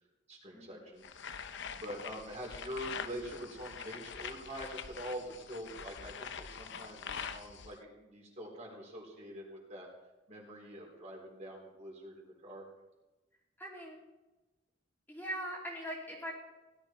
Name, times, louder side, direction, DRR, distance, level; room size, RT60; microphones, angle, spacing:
voice 1, 0.3-1.1 1.8-9.9 10.3-12.7, equal, 35° right, -2 dB, 3.9 m, -45 dB
sound 1, 1.0-7.8, left 6 dB, 60° left, 0.7 m, -44 dB
voice 2, 13.6-14.0 15.1-16.3, equal, 10° left, -3 dB, 2.6 m, -41 dB
17.0 x 12.0 x 4.5 m, 1.1 s
head